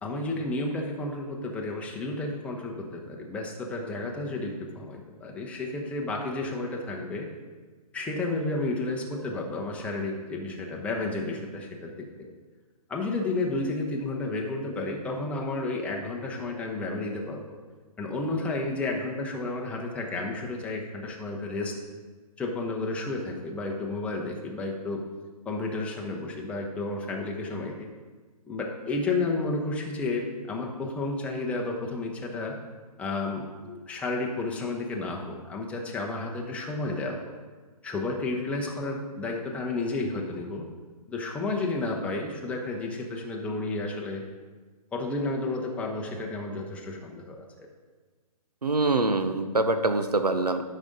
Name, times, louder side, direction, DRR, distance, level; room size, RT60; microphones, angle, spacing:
voice 1, 0.0-7.3 7.9-11.9 12.9-17.6 18.0-21.7 22.4-25.0 25.4-27.9 28.5-32.6 33.0-37.3 37.8-40.6 41.1-44.2 44.9-47.7, left 2 dB, 5° left, 0 dB, 0.8 m, -31 dB
voice 2, 48.6-50.6, right 2 dB, 90° right, 8 dB, 0.7 m, -24 dB
12.0 x 5.3 x 3.9 m, 1.4 s
figure-of-eight pair, 130°, 20 cm